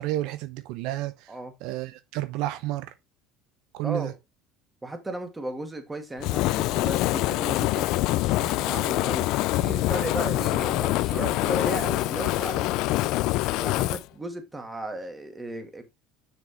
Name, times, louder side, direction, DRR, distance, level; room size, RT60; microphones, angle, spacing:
voice 1, 0.0-1.3 1.6-2.9 3.7-4.1, right 15 dB, 70° right, 0.7 m, -31 dB
voice 2, 4.8-7.9 8.2-9.3 9.6-12.7 13.5-15.8, right 1 dB, 15° right, 2.1 m, -35 dB
Fire, 6.2-14.0, left 18 dB, 65° left, 0.4 m, -25 dB
7.4 x 6.0 x 3.1 m
supercardioid pair, 100°, 0 cm